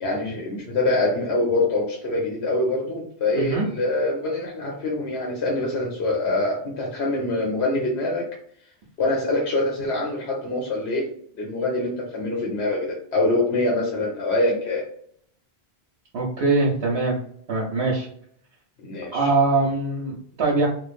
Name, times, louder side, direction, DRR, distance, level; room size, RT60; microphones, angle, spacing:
voice 1, 0.0-8.3 9.0-11.0 11.4-14.8 18.8-19.3, left 2 dB, 85° left, -1 dB, 1.0 m, -24 dB
voice 2, 3.3-3.6 16.1-17.2 17.5-18.1 19.1-20.7, right 3 dB, 70° right, -3 dB, 0.9 m, -22 dB
3.0 x 2.1 x 2.4 m, 0.64 s
omnidirectional pair, 1.1 m